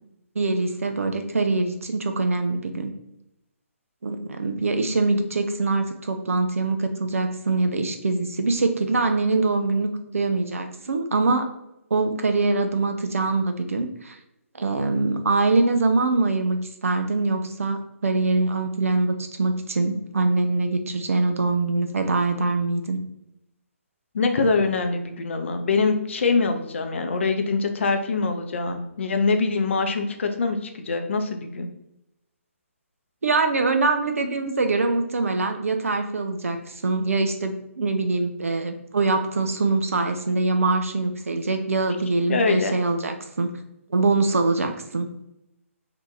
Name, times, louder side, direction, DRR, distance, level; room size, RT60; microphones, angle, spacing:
voice 1, 0.4-2.9 4.0-11.5 11.9-14.2 14.5-23.0 33.2-43.6 43.9-45.1, right 3 dB, 75° right, 6 dB, 0.4 m, -23 dB
voice 2, 24.1-31.7 42.3-42.7, left 4 dB, 60° left, 6 dB, 0.5 m, -24 dB
2.8 x 2.5 x 3.8 m, 0.86 s
figure-of-eight pair, 135°, 8 cm